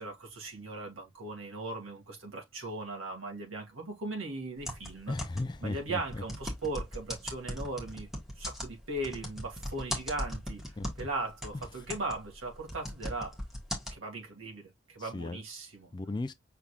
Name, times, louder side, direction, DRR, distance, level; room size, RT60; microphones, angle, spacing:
voice 1, 0.0-5.1 5.6-8.1 8.4-10.6 11.0-13.4 13.9-15.9, right 2 dB, 80° right, 2.0 m, -38 dB
sound 1, 4.6-5.6 6.1-11.1 11.4-14.0, equal, ahead, 1.2 m, -38 dB
voice 2, 5.1-6.2 10.8-10.9 11.5-11.6 15.0-15.4 15.9-16.3, left 2 dB, 20° left, 0.3 m, -36 dB
5.8 x 3.5 x 2.4 m
head